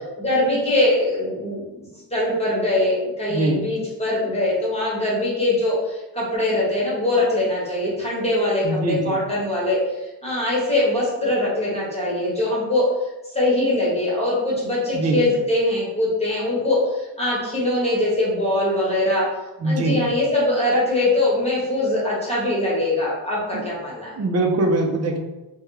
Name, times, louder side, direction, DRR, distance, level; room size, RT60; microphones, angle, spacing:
voice 1, 0.2-1.6 1.9-9.8 10.2-12.9 13.3-19.3 19.6-24.1, left 1 dB, 15° left, -6 dB, 1.1 m, -22 dB
voice 2, 3.3-3.6 8.6-9.2 14.9-15.2 19.6-20.0 23.5-23.6 24.2-25.2, right 2 dB, 35° right, 2 dB, 0.5 m, -22 dB
3.3 x 2.2 x 3.0 m, 1.0 s
wide cardioid pair, 140°, 45 cm